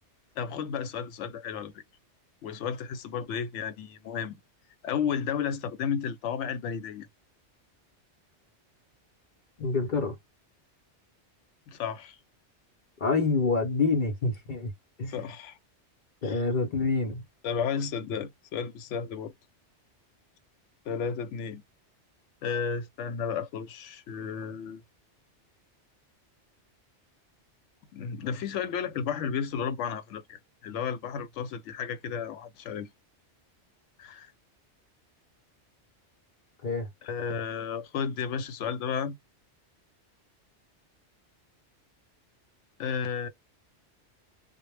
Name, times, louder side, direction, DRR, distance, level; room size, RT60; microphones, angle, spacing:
voice 1, 0.4-1.8 2.4-4.4 4.8-7.1 11.7-12.2 15.1-15.6 16.2-16.4 17.4-19.3 20.9-21.6 22.4-24.8 27.9-32.9 34.0-34.3 37.0-39.2 42.8-43.3, left 7 dB, 80° left, 0.9 m, -33 dB
voice 2, 9.6-10.1 13.0-14.7 15.0-15.2 16.2-17.2 36.6-36.9, left 3 dB, 50° left, 0.7 m, -27 dB
2.1 x 2.1 x 3.1 m
omnidirectional pair, 1.2 m